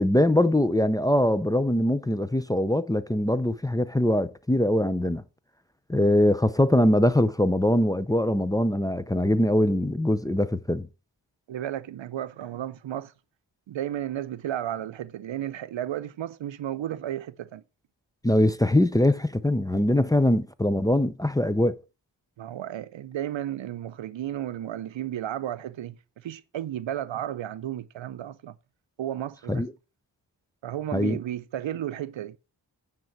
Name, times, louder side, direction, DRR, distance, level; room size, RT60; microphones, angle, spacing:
voice 1, 0.0-5.2 5.9-10.9 18.2-21.7 29.5-29.7 30.9-31.2, left 1 dB, 10° left, 0.5 m, -22 dB
voice 2, 11.5-13.1 13.7-17.6 22.4-28.6 29.0-29.6 30.6-32.4, right 11 dB, 80° right, 0.6 m, -33 dB
9.2 x 3.7 x 5.8 m
cardioid pair, 55°, 44 cm